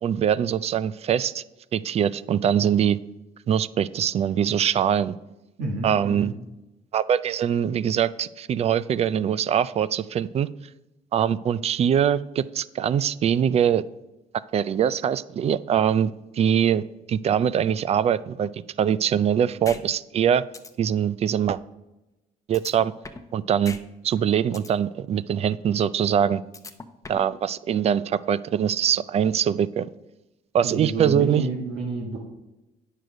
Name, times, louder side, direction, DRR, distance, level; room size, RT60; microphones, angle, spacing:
voice 1, 0.0-1.4 1.7-3.0 3.5-5.1 5.8-6.3 6.9-10.5 11.1-13.8 14.5-20.4 20.8-21.6 22.5-22.9 23.3-23.8 24.0-26.4 27.1-29.9 30.5-31.4, right 9 dB, 40° right, 18 dB, 0.4 m, -23 dB
voice 2, 5.6-6.3 30.6-32.2, right 2 dB, 85° right, -2 dB, 1.6 m, -29 dB
sound 1, 19.6-19.8 20.2-20.3 20.5-20.7 22.5-23.3 23.6-23.8 24.2-24.7 26.5-27.3, left 3 dB, 20° left, 0.7 m, -38 dB
9.3 x 6.5 x 5.1 m, 1.0 s
cardioid pair, 110°, 17 cm